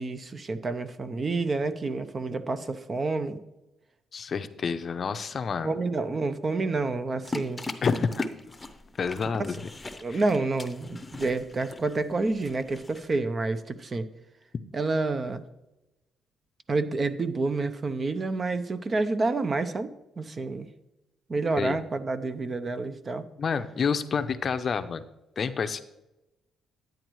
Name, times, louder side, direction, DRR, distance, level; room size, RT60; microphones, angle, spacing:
voice 1, 0.0-3.4 5.6-7.6 9.4-9.5 10.0-14.1 14.7-15.4 16.7-20.7 21.3-23.3, right 3 dB, 35° right, 11 dB, 0.7 m, -29 dB
voice 2, 4.1-5.8 7.8-8.3 9.0-9.6 10.1-10.2 21.6-21.8 23.4-25.1 25.4-25.8, left 5 dB, 45° left, 10 dB, 0.6 m, -28 dB
sound 1, 7.2-13.2, left 2 dB, 15° left, 0.8 m, -39 dB
10.5 x 9.0 x 3.1 m, 0.94 s
cardioid pair, 90°, 0 cm